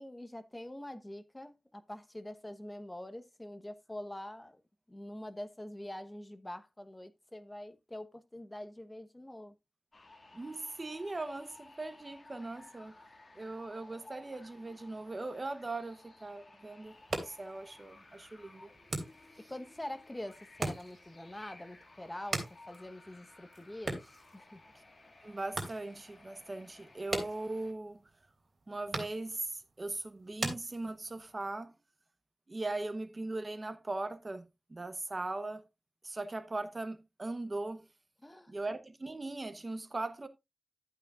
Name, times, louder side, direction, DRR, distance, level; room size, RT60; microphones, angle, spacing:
voice 1, 0.0-4.6 4.9-9.6 19.5-24.6 38.2-38.6, left 1 dB, 15° left, 1.1 m, -45 dB
sound 1, 9.9-27.7, left 2 dB, 50° left, 2.1 m, -57 dB
voice 2, 10.3-12.9 13.3-18.7 25.2-28.1 28.7-31.7 32.5-35.6 36.0-37.8 38.5-40.3, right 2 dB, 35° right, 0.9 m, -39 dB
sound 2, 16.8-31.3, right 2 dB, 55° right, 3.2 m, -43 dB
12.0 x 8.5 x 2.4 m
wide cardioid pair, 80°, 0 cm